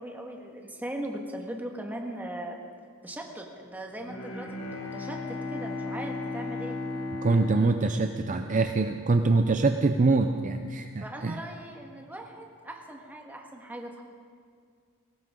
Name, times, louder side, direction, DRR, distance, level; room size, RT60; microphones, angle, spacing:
voice 1, 0.0-2.6 3.0-6.8 8.2-8.3 11.0-14.0, right 1 dB, 10° right, 1 dB, 1.7 m, -39 dB
Bowed string instrument, 4.0-8.9, left 2 dB, 85° left, 2.0 m, -36 dB
voice 2, 7.2-11.4, right 3 dB, 35° right, 6 dB, 0.5 m, -24 dB
20.0 x 17.5 x 3.8 m, 2.1 s
head